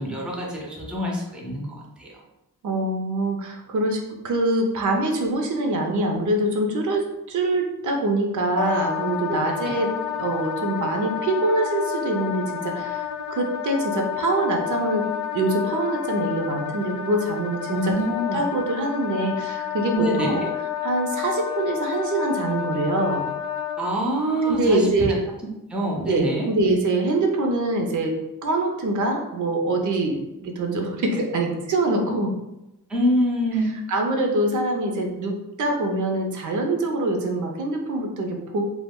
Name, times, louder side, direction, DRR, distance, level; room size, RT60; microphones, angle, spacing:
voice 1, 0.0-2.2 9.3-9.4 17.7-18.4 19.9-20.3 23.8-24.9 25.7-26.5 32.9-33.7, right 1 dB, 5° right, -2 dB, 0.5 m, -25 dB
voice 2, 2.6-15.1 15.3-18.0 18.3-20.4 20.8-23.2 24.5-25.2 26.1-32.3 33.9-38.6, right 2 dB, 60° right, 2 dB, 0.5 m, -24 dB
Wind instrument woodwind instrument, 8.6-23.8, left 9 dB, 85° left, 0.5 m, -30 dB
2.3 x 2.0 x 3.5 m, 0.93 s
cardioid pair, 115°, 34 cm